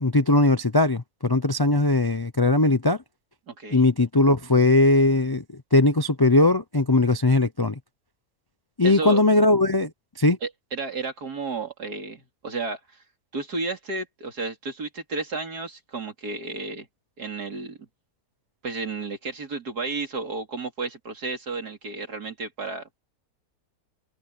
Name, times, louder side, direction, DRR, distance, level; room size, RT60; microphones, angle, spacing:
voice 1, 0.0-3.0 3.7-5.4 5.7-7.7 8.8-9.9 10.2-10.4, left 2 dB, 30° left, 0.4 m, -19 dB
voice 2, 3.5-3.8 8.8-9.2 10.4-13.0 13.3-16.9 17.2-17.9 18.6-23.0, right 3 dB, 75° right, 3.7 m, -32 dB
omnidirectional pair, 1.7 m